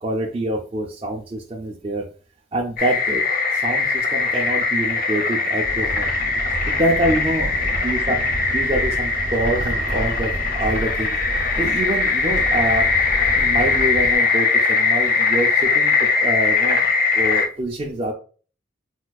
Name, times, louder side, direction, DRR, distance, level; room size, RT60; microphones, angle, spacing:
voice 1, 0.0-2.0 2.5-3.2 3.5-6.1 6.7-7.5 7.8-8.2 8.5-11.2 11.6-12.9 13.3-16.9 17.1-18.1, right 1 dB, 30° right, -1 dB, 0.4 m, -25 dB
sound 1, 2.8-17.5, left 4 dB, 50° left, 0.5 m, -21 dB
sound 2, 5.6-14.1, right 1 dB, 85° right, 0.7 m, -31 dB
4.3 x 2.3 x 2.3 m, 0.39 s
head